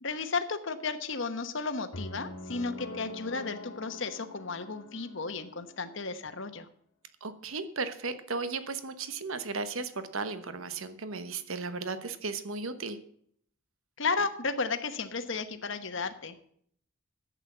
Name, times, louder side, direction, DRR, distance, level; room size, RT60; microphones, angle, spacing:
voice 1, 0.0-6.7 14.0-16.5, left 4 dB, 60° left, 9 dB, 1.1 m, -33 dB
sound 1, 1.9-6.1, left 2 dB, 85° left, 2.0 m, -44 dB
voice 2, 7.2-13.0, right 4 dB, 75° right, 11 dB, 1.1 m, -35 dB
11.0 x 8.3 x 7.3 m, 0.64 s
head